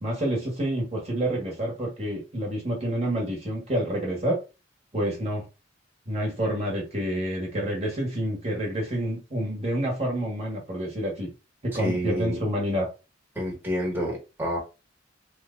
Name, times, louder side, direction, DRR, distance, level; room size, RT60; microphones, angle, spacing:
voice 1, 0.0-4.4 4.9-5.5 6.1-11.3 11.6-12.9, right 1 dB, 35° right, 1.1 m, -28 dB
voice 2, 11.7-12.4 13.3-14.6, equal, 10° right, 1.2 m, -29 dB
3.0 x 2.1 x 3.6 m
head